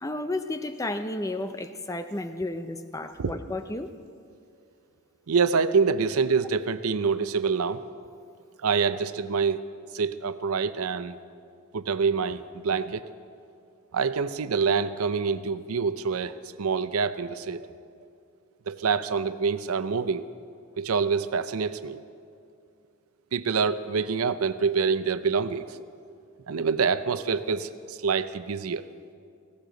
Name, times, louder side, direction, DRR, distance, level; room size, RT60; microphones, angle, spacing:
voice 1, 0.0-3.9, left 2 dB, 15° left, 9 dB, 0.5 m, -32 dB
voice 2, 5.3-7.8 8.6-9.6 9.9-11.2 11.7-13.1 13.9-17.7 18.7-20.2 20.8-22.0 23.3-25.8 26.5-28.9, right 5 dB, 85° right, 13 dB, 0.6 m, -26 dB
19.5 x 17.0 x 3.9 m, 2.4 s
head